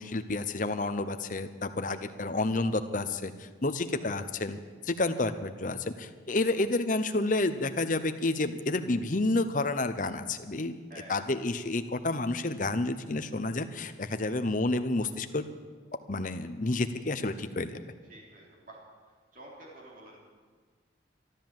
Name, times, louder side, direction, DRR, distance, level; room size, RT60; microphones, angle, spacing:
voice 1, 0.0-4.6 4.8-10.8 11.1-15.5 16.1-17.8, left 2 dB, 45° left, 9 dB, 0.8 m, -30 dB
voice 2, 18.1-18.8 19.3-20.2, right 1 dB, 45° right, -3 dB, 3.2 m, -50 dB
13.0 x 12.5 x 7.5 m, 1.5 s
head